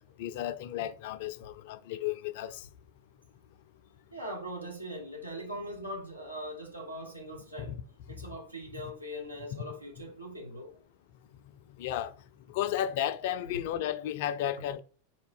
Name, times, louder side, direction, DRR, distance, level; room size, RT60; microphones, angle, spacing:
voice 1, 0.2-2.6 7.6-7.8 8.7-8.9 9.5-9.6 11.8-12.1 12.5-14.8, left 11 dB, 50° left, 0.3 m, -33 dB
voice 2, 4.1-7.7 8.2-10.7, equal, 85° right, 1.0 m, -41 dB
4.1 x 2.7 x 3.6 m
figure-of-eight pair, 90°, 0 cm